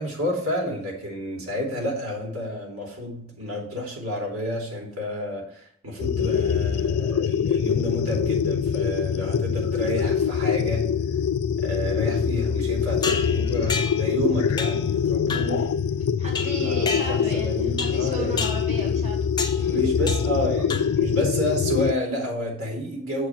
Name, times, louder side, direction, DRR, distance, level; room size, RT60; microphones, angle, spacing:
voice 1, 0.0-11.0 11.6-15.7 16.6-18.5 19.6-23.3, equal, 90° right, -2 dB, 3.0 m, -30 dB
sound 1, 6.0-21.9, left 7 dB, 90° left, 0.4 m, -24 dB
sound 2, 13.0-14.2 14.6-14.9 15.3-15.6 16.4-17.4 17.8-18.1 18.4-18.7 19.4-19.7 20.1-20.4 20.7-21.1, left 4 dB, 20° left, 0.6 m, -31 dB
voice 2, 16.2-19.2 19.6-19.9, right 1 dB, 30° right, -2 dB, 1.8 m, -36 dB
7.1 x 4.8 x 5.7 m, 0.62 s
head